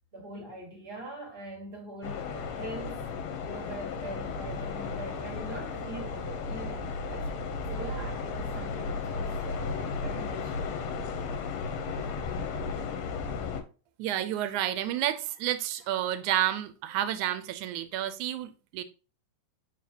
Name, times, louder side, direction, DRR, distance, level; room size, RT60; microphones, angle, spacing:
voice 1, 0.1-3.1 3.4-7.3 7.7-10.9, right 2 dB, 20° right, 1.7 m, -42 dB
sound 1, 2.0-13.6, left 4 dB, 70° left, 1.8 m, -34 dB
voice 2, 14.0-18.8, right 12 dB, 90° right, 2.1 m, -30 dB
7.4 x 4.5 x 2.8 m
omnidirectional pair, 3.3 m